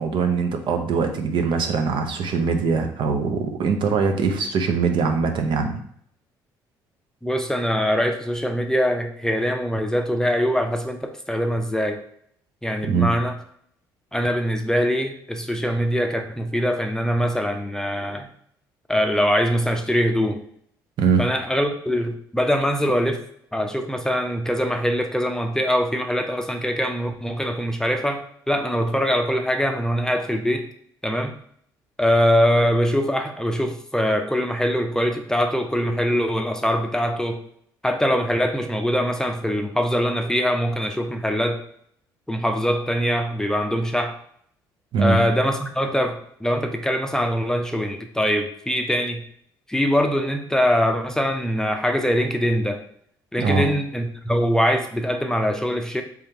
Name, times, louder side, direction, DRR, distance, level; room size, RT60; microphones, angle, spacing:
voice 1, 0.0-5.8 12.8-13.1 21.0-21.3 44.9-45.2 53.4-53.6, right 5 dB, 60° right, 5 dB, 0.6 m, -22 dB
voice 2, 7.2-12.0 12.6-13.3 14.1-18.3 18.9-20.4 21.2-23.2 23.5-28.2 28.5-30.7 31.0-31.3 32.0-37.4 37.8-41.6 42.3-44.1 45.0-49.2 49.7-52.8 53.3-56.0, equal, 5° left, 4 dB, 0.5 m, -23 dB
3.5 x 3.4 x 2.9 m, 0.65 s
supercardioid pair, 70°, 9 cm